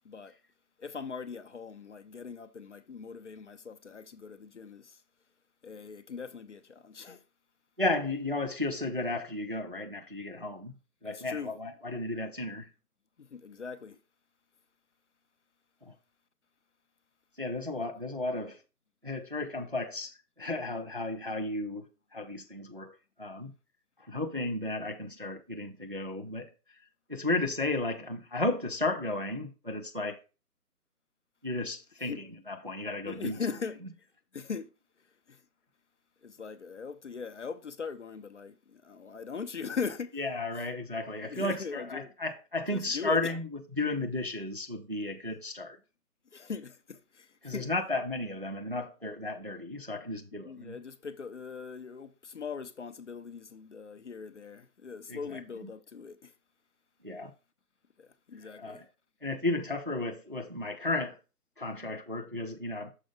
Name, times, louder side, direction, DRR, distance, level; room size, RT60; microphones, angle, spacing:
voice 1, 0.8-5.0 5.6-7.2 11.0-11.5 13.2-14.0 32.1-32.2 33.1-33.8 34.3-34.7 35.3-35.4 36.2-40.2 41.2-42.1 42.7-43.4 46.3-47.7 50.3-56.3 58.0-58.8, left 5 dB, 50° left, 0.5 m, -40 dB
voice 2, 7.8-10.7 11.0-12.7 15.8-15.9 17.4-18.6 19.0-21.9 22.1-23.5 24.0-26.5 27.1-30.2 31.4-33.4 40.1-43.5 43.8-45.8 47.4-50.8 55.1-55.4 57.0-57.3 58.4-58.9 59.2-61.2 61.6-62.9, left 2 dB, 40° right, 0.4 m, -34 dB
6.4 x 4.7 x 3.6 m
figure-of-eight pair, 155°, 47 cm